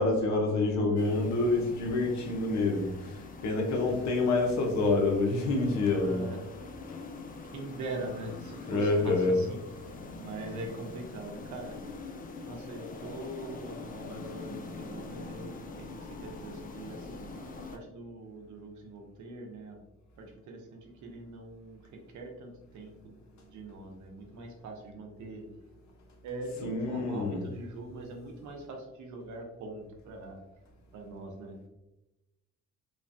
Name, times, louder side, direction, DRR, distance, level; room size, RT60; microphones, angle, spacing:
voice 1, 0.0-6.3 6.9-7.0 8.7-9.4 26.6-27.4, left 3 dB, 65° left, 2 dB, 0.7 m, -27 dB
sound 1, 1.0-17.8, left 3 dB, 30° left, 0.3 m, -44 dB
voice 2, 6.0-6.4 7.4-11.8 12.4-19.8 20.2-25.4 26.2-30.4 30.9-31.6, right 2 dB, 75° right, 2 dB, 0.7 m, -43 dB
3.1 x 2.1 x 2.5 m, 0.98 s
cardioid pair, 90°, 30 cm